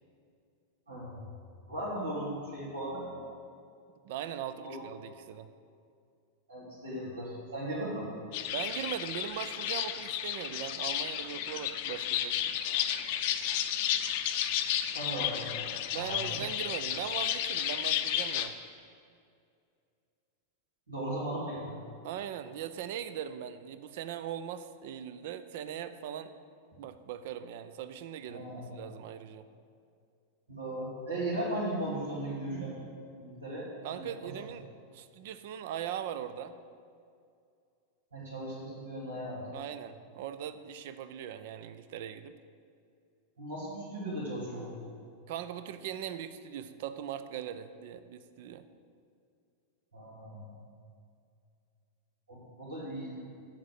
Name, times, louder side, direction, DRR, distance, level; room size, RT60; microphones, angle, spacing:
voice 1, 0.9-1.2 1.7-3.1 4.6-4.8 6.5-8.1 14.9-16.4 20.9-21.8 28.3-28.7 30.5-32.8 33.2-34.3 38.1-39.5 43.4-44.8 49.9-50.5 52.3-53.2, right 1 dB, 75° right, -10 dB, 2.7 m, -37 dB
voice 2, 4.0-5.5 8.5-12.5 15.9-18.5 22.0-26.3 26.8-29.5 33.8-34.7 34.9-36.6 39.5-42.4 45.3-48.6, right 10 dB, 50° right, 12 dB, 0.5 m, -40 dB
sound 1, 8.3-18.5, left 11 dB, 50° left, 0.5 m, -32 dB
7.4 x 7.3 x 7.7 m, 2.4 s
figure-of-eight pair, 90°, 0 cm